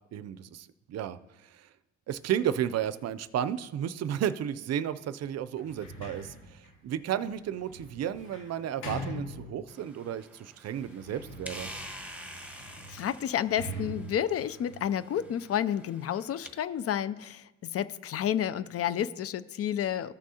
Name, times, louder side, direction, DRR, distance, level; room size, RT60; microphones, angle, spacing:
voice 1, 0.1-1.7 2.1-11.7, right 10 dB, 55° right, 14 dB, 0.5 m, -33 dB
Sliding door, 5.5-10.0 10.7-15.5, equal, 80° left, 2.7 m, -44 dB
sound 1, 9.7-16.5, right 1 dB, 5° right, 1.2 m, -47 dB
voice 2, 12.4-20.1, left 10 dB, 50° left, 15 dB, 0.5 m, -31 dB
14.5 x 6.1 x 2.8 m, 1.0 s
cardioid pair, 90°, 30 cm